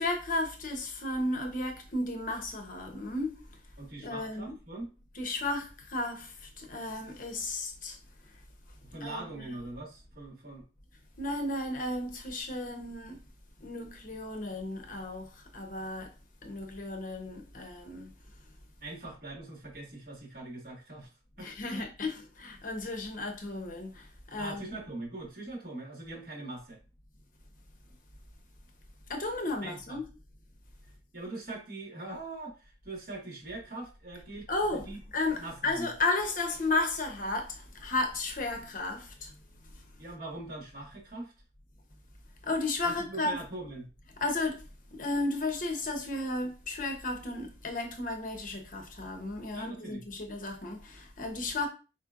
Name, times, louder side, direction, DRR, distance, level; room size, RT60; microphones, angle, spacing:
voice 1, 0.0-3.4 4.0-4.5 5.2-8.0 9.0-9.3 11.2-13.2 13.6-16.1 16.4-18.1 21.4-24.7 29.1-30.0 34.5-34.9 35.1-39.3 42.4-43.4 44.2-44.6 44.9-51.7, left 2 dB, 50° left, 0.9 m, -34 dB
voice 2, 3.8-4.9 8.8-10.6 18.8-21.1 21.4-21.8 24.4-26.8 29.6-30.0 31.1-35.0 35.4-35.9 40.0-41.3 42.8-43.9 49.5-50.0, right 2 dB, 55° right, 1.7 m, -42 dB
4.4 x 4.3 x 2.5 m
head